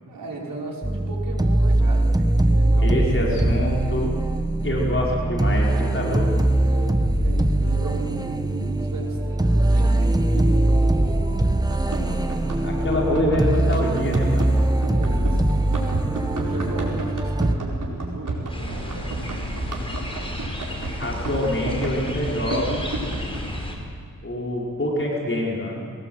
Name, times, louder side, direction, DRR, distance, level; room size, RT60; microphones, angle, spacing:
voice 1, 0.1-2.1 2.4-3.3 6.5-11.3 14.8-15.5 16.3-19.1, right 3 dB, 85° right, -4 dB, 5.7 m, -36 dB
sound 1, 0.8-17.5, right 1 dB, 10° right, 1.2 m, -21 dB
voice 2, 2.8-4.1 4.6-6.3 12.6-14.5 21.0-22.9 24.2-25.8, left 1 dB, 40° left, -4 dB, 5.0 m, -25 dB
Run, 11.7-23.4, right 2 dB, 65° right, 4.7 m, -32 dB
sound 2, 18.5-23.7, left 1 dB, 15° left, 4.9 m, -32 dB
23.0 x 18.5 x 7.9 m, 2.3 s
wide cardioid pair, 85°, 32 cm